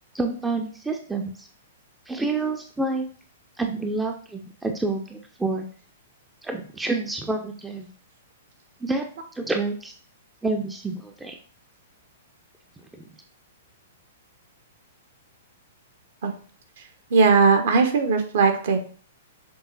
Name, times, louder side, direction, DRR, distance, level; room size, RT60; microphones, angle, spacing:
voice 1, 0.1-1.5 2.1-3.1 3.6-5.7 6.4-7.9 8.8-9.0 9.3-9.9 10.4-11.4 13.0-13.1, right 3 dB, 5° right, 4 dB, 0.6 m, -28 dB
voice 2, 16.8-18.8, right 5 dB, 55° right, 5 dB, 1.1 m, -19 dB
6.9 x 3.7 x 4.0 m, 0.43 s
figure-of-eight pair, 105°, 0 cm